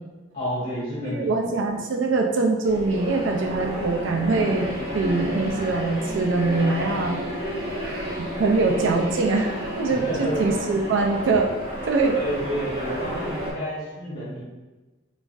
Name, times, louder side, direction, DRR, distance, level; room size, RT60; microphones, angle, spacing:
voice 1, 0.3-1.3 9.9-10.4 12.1-14.4, equal, 45° left, -7 dB, 1.5 m, -30 dB
voice 2, 1.0-4.7 4.9-7.2 7.8-8.0 8.4-9.5 9.8-11.6 11.8-12.2, right 3 dB, 65° right, 2 dB, 0.4 m, -23 dB
sound 1, 2.6-13.5, equal, 30° right, 0.7 m, -31 dB
4.0 x 2.4 x 2.4 m, 1.2 s
head